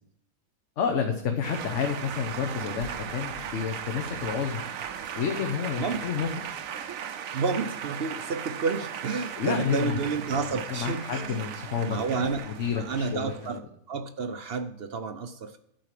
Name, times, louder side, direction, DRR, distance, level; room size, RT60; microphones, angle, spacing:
voice 1, 0.8-4.6 5.1-6.3 9.4-10.0 10.3-12.0 12.5-13.3, left 7 dB, 60° left, 4 dB, 1.2 m, -30 dB
Male speech man speaking, 1.4-13.6, right 8 dB, 75° right, 1.1 m, -37 dB
voice 2, 7.3-11.4 11.9-12.4 12.7-15.6, right 5 dB, 55° right, 8 dB, 0.8 m, -30 dB
11.5 x 4.6 x 7.5 m, 0.73 s
omnidirectional pair, 1.5 m